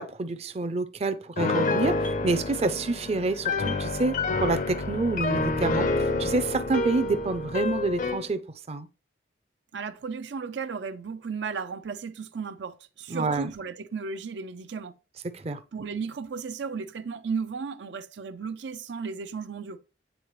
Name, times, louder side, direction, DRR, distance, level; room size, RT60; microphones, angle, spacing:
voice 1, 0.0-8.4 8.7-8.9 13.1-13.5 15.3-15.6, right 3 dB, 35° right, 0.5 m, -28 dB
Piano, 1.4-8.3, left 3 dB, 45° left, 0.5 m, -28 dB
voice 2, 9.7-14.9 15.7-19.8, right 5 dB, 90° right, 0.6 m, -35 dB
8.1 x 3.9 x 3.0 m
head